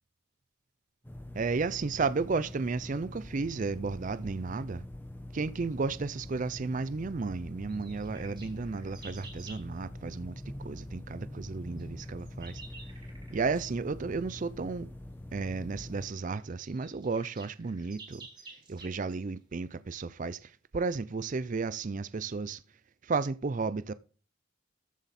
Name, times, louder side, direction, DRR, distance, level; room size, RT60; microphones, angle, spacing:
sound 1, 1.0-16.1, left 1 dB, 10° left, 1.0 m, -44 dB
voice 1, 1.3-4.8 5.3-12.6 13.3-14.9 15.3-18.3 18.7-22.6 23.0-23.9, right 4 dB, 40° right, 0.4 m, -33 dB
sound 2, 7.7-9.7 11.8-13.7 15.6-15.7 16.2-16.3 16.5-19.2, right 3 dB, 20° right, 2.8 m, -51 dB
14.0 x 7.2 x 4.2 m
head